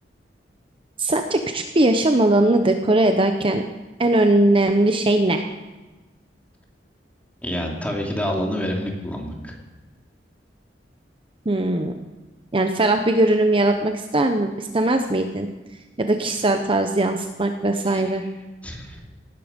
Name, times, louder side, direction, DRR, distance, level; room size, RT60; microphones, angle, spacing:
voice 1, 1.0-3.6 4.0-5.4 11.5-11.9 12.5-15.5 16.0-18.2, right 2 dB, 30° right, 6 dB, 0.8 m, -20 dB
voice 2, 7.4-9.5 17.9-18.0 18.6-19.0, equal, 10° left, -1 dB, 2.7 m, -27 dB
18.5 x 11.5 x 5.2 m, 1.1 s
head